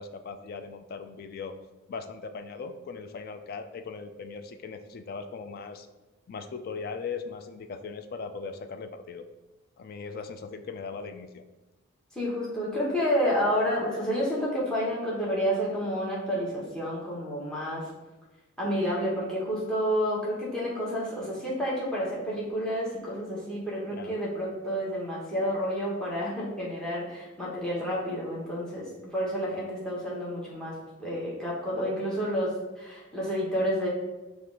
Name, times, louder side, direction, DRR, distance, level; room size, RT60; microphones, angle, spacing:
voice 1, 0.0-1.6 1.9-5.9 6.3-9.3 9.8-11.4 23.9-24.1, left 5 dB, 50° left, 9 dB, 0.3 m, -39 dB
voice 2, 12.1-17.9 18.6-33.9, equal, 5° left, -6 dB, 1.0 m, -30 dB
5.9 x 2.4 x 3.6 m, 1.1 s
head